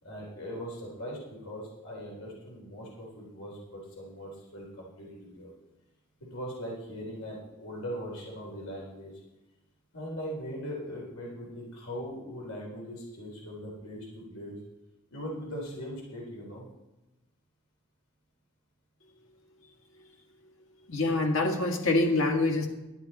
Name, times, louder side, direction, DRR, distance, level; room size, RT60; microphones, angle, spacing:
voice 1, 0.0-5.5 6.2-9.1 9.9-14.6 15.1-16.7, equal, 85° left, -3 dB, 3.7 m, -40 dB
voice 2, 20.9-22.7, left 2 dB, 65° left, 2 dB, 1.9 m, -25 dB
11.5 x 11.5 x 4.2 m, 1.0 s
head